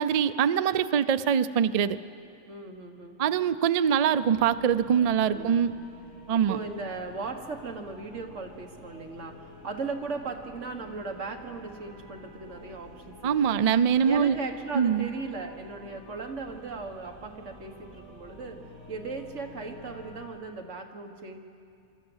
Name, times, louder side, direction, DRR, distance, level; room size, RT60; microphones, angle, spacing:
voice 1, 0.0-2.0 3.2-5.7 6.3-6.6 13.2-14.3 14.7-15.1, right 8 dB, 90° right, 13 dB, 0.3 m, -23 dB
voice 2, 2.4-3.2 5.3-5.5 6.3-13.6 14.0-18.6 18.9-21.4, right 4 dB, 65° right, 3 dB, 1.8 m, -37 dB
sound 1, 4.2-20.2, left 1 dB, 30° left, 7.5 m, -49 dB
25.0 x 13.0 x 8.0 m, 2.5 s
omnidirectional pair, 1.4 m